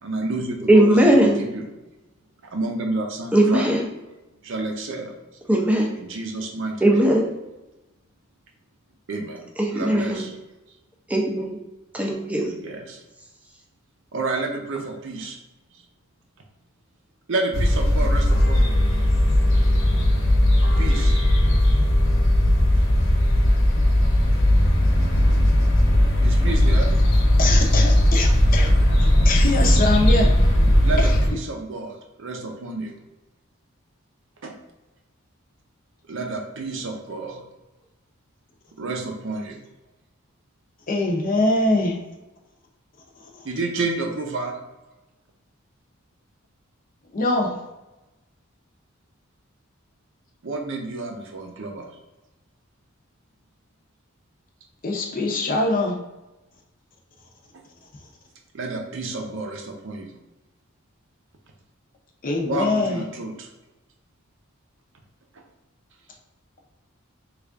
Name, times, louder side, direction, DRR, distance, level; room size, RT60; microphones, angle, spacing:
voice 1, 0.0-1.7 2.4-3.7 4.4-5.1 6.0-7.0 9.1-9.4 9.7-10.4 12.6-13.0 14.1-15.4 15.7-15.8 17.3-18.8 20.8-21.2 26.2-26.9 30.8-32.9 34.4-34.5 36.1-37.4 38.8-39.6 43.4-44.5 50.4-51.9 57.5-57.6 58.5-60.1 62.5-63.5 65.3-65.4, right 3 dB, 65° right, 2 dB, 0.6 m, -30 dB
voice 2, 0.7-1.4 3.3-3.9 5.5-5.9 6.8-7.3 9.6-10.2 11.1-11.6 11.9-12.5, right 1 dB, 5° right, -1 dB, 0.5 m, -18 dB
sound 1, 17.5-31.3, left 1 dB, 65° left, 0.9 m, -18 dB
voice 3, 27.4-28.7 29.0-30.3 30.6-30.7 31.0-31.2 40.9-42.0 43.2-43.5 47.1-47.6 54.8-56.0 62.2-63.0, left 2 dB, 45° left, 1 dB, 0.6 m, -23 dB
3.3 x 2.4 x 3.5 m, 1.0 s
head